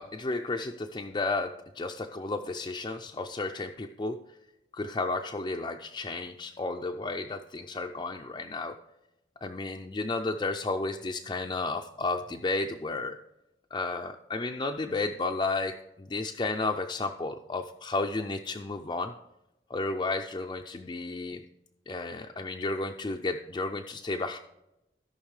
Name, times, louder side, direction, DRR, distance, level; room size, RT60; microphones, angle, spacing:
voice 1, 0.0-4.2 4.7-8.8 9.4-13.2 13.7-19.1 19.7-21.4 21.9-24.4, left 3 dB, 25° left, 3 dB, 0.4 m, -32 dB
16.5 x 5.7 x 3.2 m, 0.91 s
head